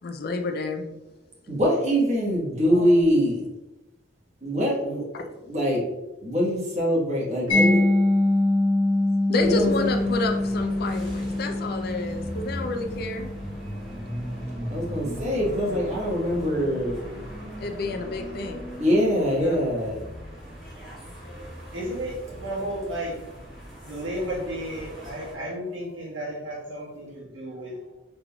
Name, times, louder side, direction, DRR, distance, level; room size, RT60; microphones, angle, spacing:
voice 1, 0.0-0.9 9.3-13.3 17.6-18.8 19.4-19.6, left 3 dB, 50° left, 5 dB, 0.4 m, -29 dB
voice 2, 1.5-3.4 4.4-5.0 5.5-5.8 6.2-7.8 9.4-10.1 14.7-17.0 18.8-20.0, equal, 35° right, -5 dB, 1.2 m, -23 dB
voice 3, 7.4-8.0 21.7-23.2 23.8-28.0, right 1 dB, 75° right, -4 dB, 1.2 m, -33 dB
Mallet percussion, 7.5-14.3, left 2 dB, 25° left, 1.2 m, -24 dB
sound 1, 9.4-25.3, equal, ahead, 1.4 m, -38 dB
3.7 x 3.4 x 2.2 m, 1.0 s
head